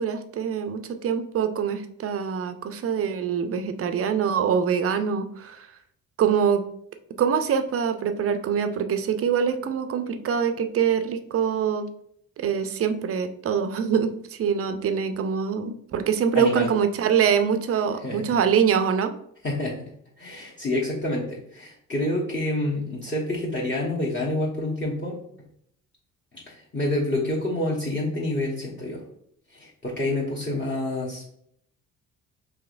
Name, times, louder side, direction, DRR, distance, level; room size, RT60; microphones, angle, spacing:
voice 1, 0.0-5.7 6.2-6.6 7.2-11.9 12.4-19.1, right 7 dB, 35° right, 9 dB, 0.5 m, -24 dB
voice 2, 16.3-16.7 18.0-18.4 19.4-19.9 20.2-25.2 26.3-29.0 29.5-31.3, left 1 dB, 30° left, -3 dB, 1.1 m, -28 dB
4.6 x 3.0 x 2.5 m, 0.69 s
hypercardioid pair, 50°, 40 cm